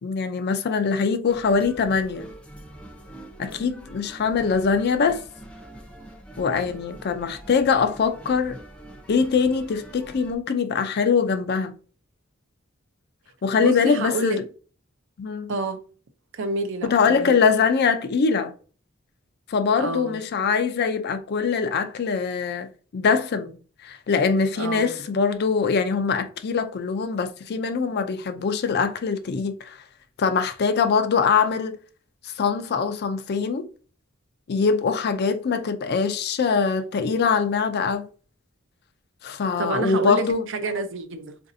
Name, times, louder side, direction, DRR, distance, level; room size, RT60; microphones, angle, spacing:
voice 1, 0.0-2.3 3.4-5.2 6.4-8.6 9.1-11.7 13.4-14.4 15.2-15.5 16.8-18.5 19.5-22.7 22.9-23.6 23.8-29.8 30.2-31.8 32.2-33.7 34.5-38.1 39.2-40.4, left 5 dB, 50° left, 0.4 m, -23 dB
sound 1, 1.3-10.3, right 1 dB, 5° left, 0.6 m, -44 dB
voice 2, 13.6-14.4 15.5-15.8 16.3-17.3 19.8-20.2 24.6-24.9 39.6-41.4, right 3 dB, 65° right, 0.5 m, -29 dB
4.0 x 2.5 x 2.6 m
head